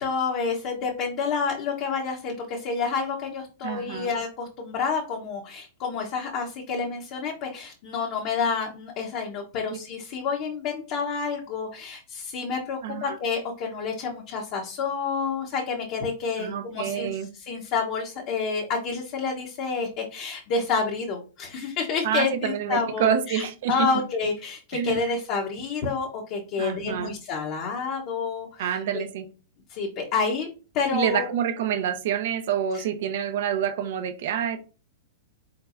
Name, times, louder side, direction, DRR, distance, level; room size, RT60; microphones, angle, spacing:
voice 1, 0.0-17.1 17.3-29.0 29.7-30.5 30.7-31.3 32.7-32.8, left 5 dB, 45° left, -1 dB, 1.0 m, -29 dB
voice 2, 3.6-4.1 9.7-9.8 12.8-13.2 16.4-17.3 22.0-23.9 24.7-25.0 26.6-27.1 28.6-29.2 30.9-34.6, right 9 dB, 65° right, 9 dB, 0.8 m, -27 dB
4.5 x 3.9 x 2.6 m, 0.35 s
hypercardioid pair, 125°, 0 cm